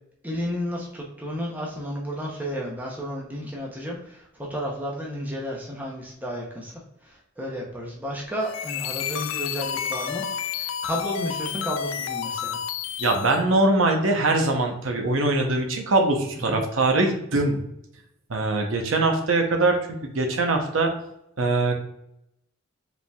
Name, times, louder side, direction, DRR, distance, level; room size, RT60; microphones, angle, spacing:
voice 1, 0.2-10.2 10.5-12.6 16.3-16.6, equal, 10° right, -2 dB, 0.7 m, -32 dB
sound 1, 8.4-13.4, left 8 dB, 75° left, 0.3 m, -30 dB
voice 2, 13.0-17.6 18.3-19.8 20.0-20.9 21.4-21.7, right 2 dB, 80° right, 3 dB, 0.7 m, -22 dB
4.9 x 3.4 x 2.3 m, 0.79 s
head